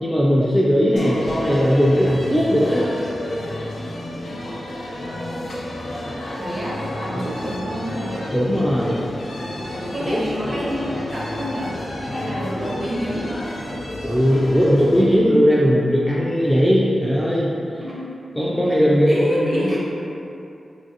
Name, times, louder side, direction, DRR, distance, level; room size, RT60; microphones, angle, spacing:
voice 1, 0.0-2.9 7.1-7.3 8.3-9.0 10.0-10.2 14.0-17.8 18.4-19.8, equal, 5° left, -7 dB, 0.3 m, -18 dB
sound 1, 1.0-15.0, left 1 dB, 80° left, 0.4 m, -31 dB
voice 2, 6.3-8.2 9.9-11.8 12.0-13.3 17.7-18.1 19.1-19.8, equal, 35° right, -7 dB, 0.9 m, -28 dB
3.2 x 2.5 x 2.7 m, 2.7 s
cardioid pair, 70°, 0 cm